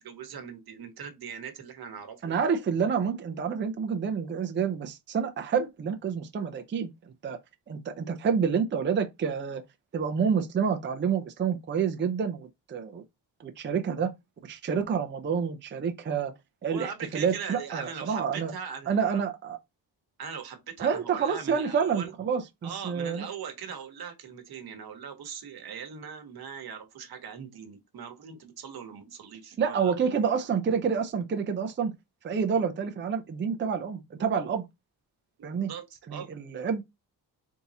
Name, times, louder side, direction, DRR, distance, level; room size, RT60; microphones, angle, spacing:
voice 1, 0.0-2.4 16.7-19.2 20.2-22.1 22.6-29.9 35.4-36.3, right 7 dB, 60° right, 1.1 m, -40 dB
voice 2, 2.2-6.9 7.2-7.4 7.7-9.6 9.9-13.0 13.4-14.1 14.4-16.3 16.6-18.5 18.9-19.6 20.8-23.3 29.6-31.9 32.2-34.6 35.4-35.7 36.1-36.8, right 6 dB, 25° right, 0.5 m, -28 dB
3.5 x 2.8 x 4.1 m
wide cardioid pair, 155°, 42 cm